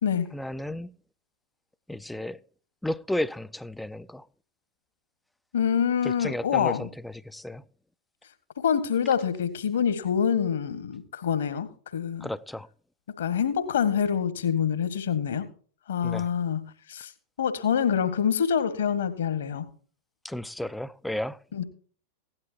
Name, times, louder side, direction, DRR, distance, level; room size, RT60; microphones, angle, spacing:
voice 1, 0.3-0.9 1.9-2.4 2.8-4.2 6.0-7.6 12.2-12.7 16.0-16.3 20.2-21.4, left 1 dB, 5° left, 0.5 m, -33 dB
voice 2, 5.5-6.9 8.6-11.7 11.9-12.3 13.2-15.5 15.9-17.1 17.4-19.7 21.5-21.6, left 8 dB, 65° left, 1.7 m, -26 dB
17.0 x 11.5 x 2.9 m
figure-of-eight pair, 90°, 0 cm